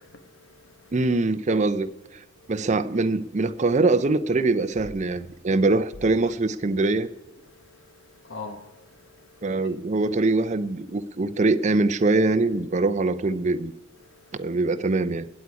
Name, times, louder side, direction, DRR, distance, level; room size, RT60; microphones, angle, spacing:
voice 1, 0.0-1.0 1.5-1.7 2.3-2.6 3.7-3.8 4.8-4.9 5.3-5.5 6.2-6.3 7.4-9.5 14.0-14.5, left 2 dB, 65° left, 1.4 m, -44 dB
voice 2, 0.9-1.9 2.5-7.1 9.4-13.7 14.3-15.3, right 3 dB, 35° right, 0.5 m, -23 dB
21.5 x 8.4 x 4.8 m
head